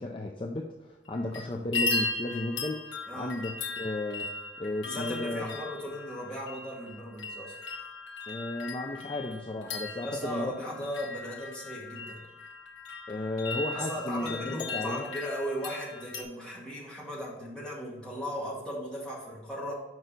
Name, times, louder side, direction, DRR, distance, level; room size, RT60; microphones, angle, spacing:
voice 1, 0.0-4.3 4.6-5.6 8.3-10.7 13.1-15.1, left 2 dB, 25° left, 1 dB, 0.4 m, -34 dB
sound 1, 1.0-1.4 1.7-16.2, left 3 dB, 85° left, 1.2 m, -37 dB
voice 2, 3.1-3.4 4.8-7.6 10.0-12.2 13.7-19.7, equal, 5° left, -6 dB, 1.9 m, -37 dB
6.2 x 5.3 x 3.9 m, 1.2 s
head